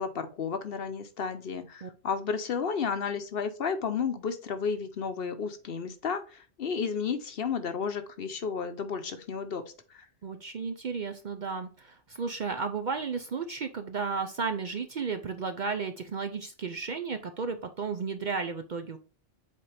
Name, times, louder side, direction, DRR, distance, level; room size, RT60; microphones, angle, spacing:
voice 1, 0.0-9.6 9.9-10.1, left 6 dB, 60° left, 9 dB, 0.9 m, -32 dB
voice 2, 10.2-19.0, right 5 dB, 50° right, 7 dB, 0.6 m, -33 dB
7.4 x 4.2 x 3.3 m, 0.38 s
omnidirectional pair, 1.2 m